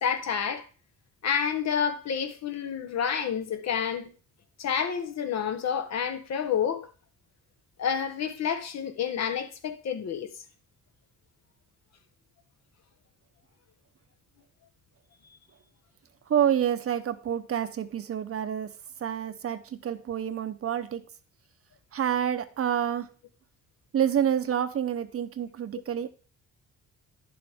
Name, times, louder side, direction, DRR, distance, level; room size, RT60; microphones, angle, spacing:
voice 1, 0.0-0.6 1.2-4.1 4.6-6.9 7.8-10.3, left 7 dB, 60° left, 1.3 m, -29 dB
voice 2, 16.3-18.7 19.0-21.0 21.9-23.1 23.9-26.1, right 9 dB, 50° right, 0.9 m, -28 dB
10.0 x 7.1 x 3.6 m
cardioid pair, 90°, 30 cm